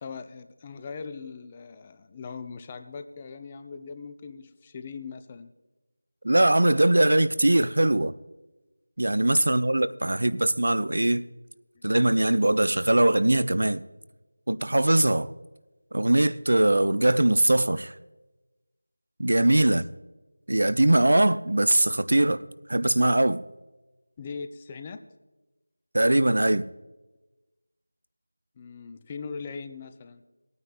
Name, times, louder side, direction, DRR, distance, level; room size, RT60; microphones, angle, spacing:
voice 1, 0.0-5.5 9.4-9.7 11.7-11.9 24.2-25.0 28.6-30.2, left 5 dB, 15° left, 0.4 m, -40 dB
voice 2, 6.2-8.1 9.0-11.2 11.8-13.8 14.5-15.3 15.9-17.9 19.2-19.8 20.5-23.4 25.9-26.7, right 1 dB, 60° right, 0.4 m, -21 dB
19.5 x 9.3 x 2.5 m
figure-of-eight pair, 165°, 0 cm